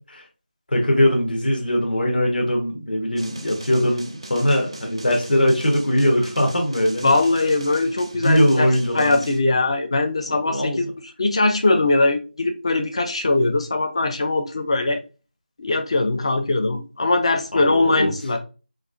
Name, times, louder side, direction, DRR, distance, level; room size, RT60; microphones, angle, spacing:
voice 1, 0.7-7.1 8.2-9.2 10.5-10.8 17.5-18.1, equal, 55° left, 1.0 m, -21 dB
sound 1, 3.2-9.4, right 2 dB, 30° right, 0.3 m, -40 dB
voice 2, 7.0-8.7 8.9-10.9 11.2-15.0 15.6-18.4, left 2 dB, 30° left, 0.4 m, -21 dB
3.9 x 2.5 x 2.4 m
figure-of-eight pair, 170°, 6 cm